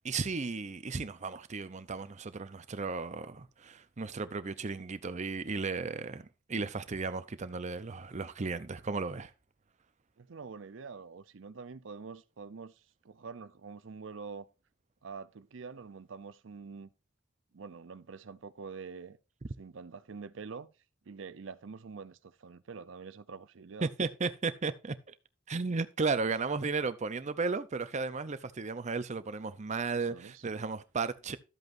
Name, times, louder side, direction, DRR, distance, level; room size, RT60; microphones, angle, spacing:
voice 1, 0.0-6.2 6.5-9.3 23.8-25.0 25.5-31.4, right 4 dB, 40° right, 0.6 m, -34 dB
voice 2, 10.2-14.5 15.0-16.9 17.5-19.2 19.6-20.7 21.1-23.9 29.9-30.4, right 5 dB, 75° right, 0.6 m, -46 dB
12.5 x 8.0 x 2.6 m
head